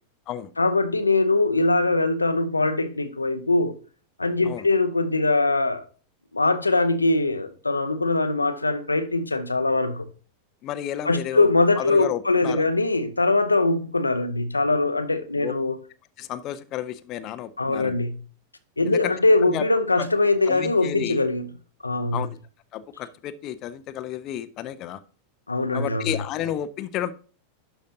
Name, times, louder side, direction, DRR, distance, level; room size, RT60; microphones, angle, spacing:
voice 1, 0.6-3.7 4.2-5.9 6.3-10.0 11.0-15.8 17.6-18.2 18.8-21.5 21.8-22.3 25.5-26.2, left 2 dB, 80° left, 0.6 m, -22 dB
voice 2, 10.6-11.5 11.8-12.6 15.4-15.5 16.2-18.0 18.9-19.1 19.5-19.6 20.0-20.1 20.5-21.2 22.1-22.4 22.7-25.0 25.7-27.1, left 11 dB, 35° left, 0.5 m, -31 dB
11.5 x 5.1 x 2.7 m
figure-of-eight pair, 90°, 0 cm